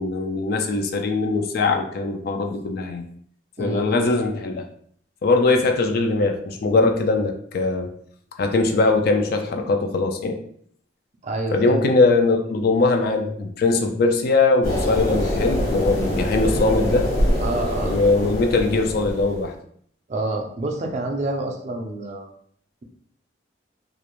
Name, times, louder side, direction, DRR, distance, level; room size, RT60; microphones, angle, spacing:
voice 1, 0.0-3.1 3.6-4.7 5.2-7.9 8.4-10.4 11.5-17.1 17.9-19.5, left 3 dB, 55° left, 5 dB, 0.3 m, -21 dB
voice 2, 3.6-4.1 11.2-11.8 17.4-18.0 20.1-22.3, right 2 dB, 35° right, 2 dB, 0.4 m, -28 dB
sound 1, 14.6-19.5, left 1 dB, 85° left, 1.1 m, -24 dB
2.4 x 2.0 x 2.9 m, 0.62 s
head